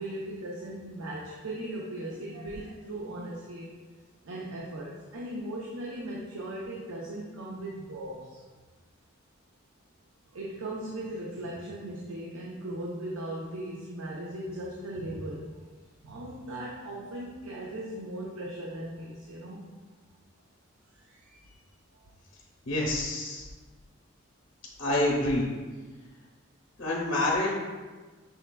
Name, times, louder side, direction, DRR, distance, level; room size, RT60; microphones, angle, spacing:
voice 1, 0.0-3.8 4.2-8.4 10.3-15.5 16.0-19.6 20.9-21.5, right 1 dB, 90° right, -4 dB, 0.6 m, -38 dB
voice 2, 22.7-23.5 24.8-25.4 26.8-27.5, left 1 dB, 65° left, -3 dB, 0.7 m, -27 dB
5.6 x 3.2 x 2.2 m, 1.3 s
head